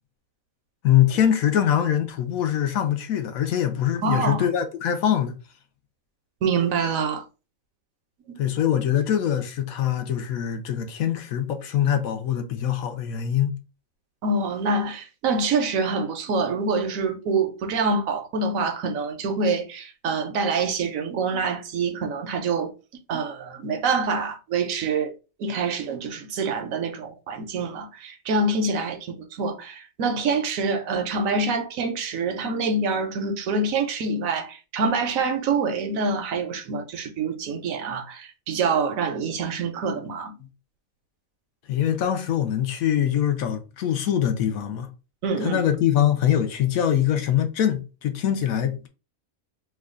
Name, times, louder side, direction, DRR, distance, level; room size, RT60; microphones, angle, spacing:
voice 1, 0.8-5.3 8.4-13.6 41.7-44.9 45.4-48.9, left 10 dB, 80° left, 1.1 m, -23 dB
voice 2, 4.0-4.4 6.4-7.2 8.3-8.4 14.2-22.7 23.1-25.1 25.4-40.4 45.2-45.6, right 4 dB, 75° right, 1.1 m, -26 dB
3.1 x 2.2 x 3.6 m
omnidirectional pair, 1.4 m